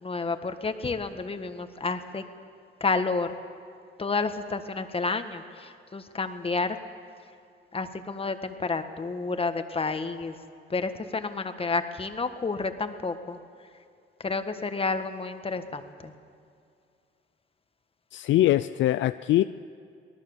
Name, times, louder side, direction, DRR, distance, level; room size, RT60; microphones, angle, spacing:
voice 1, 0.0-2.2 2.8-3.3 4.0-6.8 7.7-10.3 10.7-13.4 14.2-16.1, left 4 dB, 30° left, 8 dB, 1.6 m, -30 dB
voice 2, 18.1-19.4, left 14 dB, 70° left, 13 dB, 0.5 m, -22 dB
25.0 x 19.0 x 7.2 m, 2.4 s
cardioid pair, 90°, 20 cm